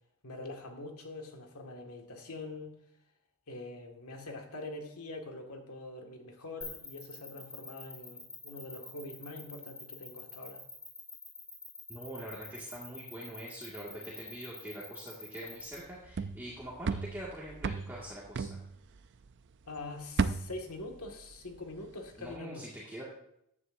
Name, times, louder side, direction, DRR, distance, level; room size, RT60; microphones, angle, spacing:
voice 1, 0.2-2.8 3.5-10.6 19.7-22.7, left 2 dB, 85° left, 3 dB, 1.9 m, -44 dB
sound 1, 6.6-15.7, left 3 dB, 20° left, 3.9 m, -46 dB
voice 2, 11.9-18.6 22.2-23.0, right 1 dB, 10° right, -6 dB, 1.9 m, -44 dB
sound 2, 15.7-19.5 19.8-21.8 22.1-22.4, right 4 dB, 55° right, 0.4 m, -35 dB
14.5 x 9.6 x 2.6 m, 0.75 s
head